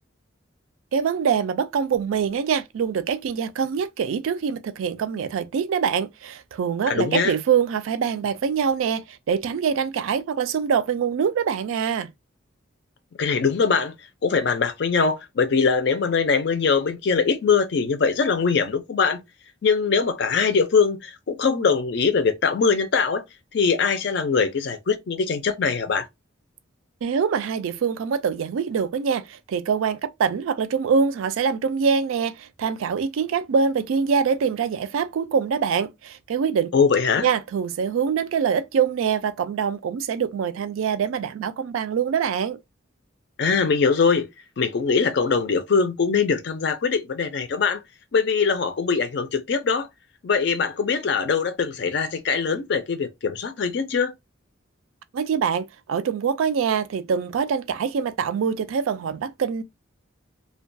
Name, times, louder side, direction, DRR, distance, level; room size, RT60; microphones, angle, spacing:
voice 1, 0.9-12.1 27.0-36.7 37.2-42.6 55.1-59.6, right 6 dB, 80° right, 0.3 m, -24 dB
voice 2, 6.9-7.3 13.2-13.9 14.2-19.2 19.6-23.2 23.5-26.1 36.7-37.3 43.4-44.3 44.6-47.8 48.1-49.9 50.2-54.1, left 5 dB, 55° left, 0.4 m, -22 dB
2.3 x 2.2 x 2.5 m
head